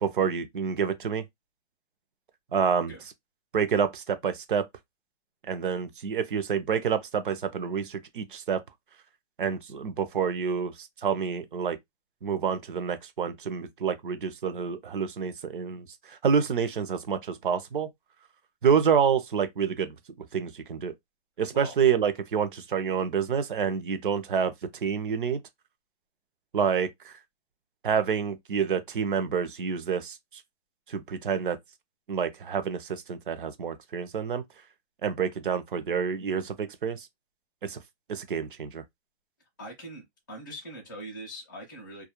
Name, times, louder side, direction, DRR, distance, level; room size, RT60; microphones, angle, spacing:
voice 1, 0.0-1.2 2.5-2.9 3.5-4.7 5.5-8.6 9.4-11.8 12.2-17.9 18.6-20.9 21.4-24.5 24.8-25.4 26.5-27.1 27.8-30.2 30.9-31.6 32.1-34.4 35.0-37.1 37.6-37.8 38.1-38.8, right 7 dB, 50° right, 0.5 m, -28 dB
voice 2, 39.6-42.0, equal, 20° left, 0.4 m, -42 dB
2.3 x 2.1 x 2.8 m
hypercardioid pair, 175°, 34 cm